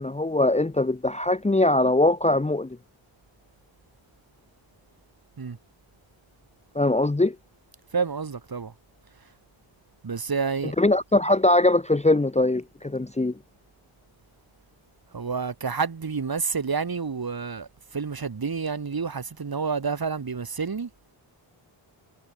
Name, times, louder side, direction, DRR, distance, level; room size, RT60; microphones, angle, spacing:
voice 1, 0.0-2.8 6.7-7.4 10.6-13.3, left 2 dB, 15° left, 1.0 m, -22 dB
voice 2, 7.9-8.7 10.0-10.7 15.1-20.9, right 5 dB, 45° right, 3.5 m, -29 dB
wide cardioid pair, 110°, 50 cm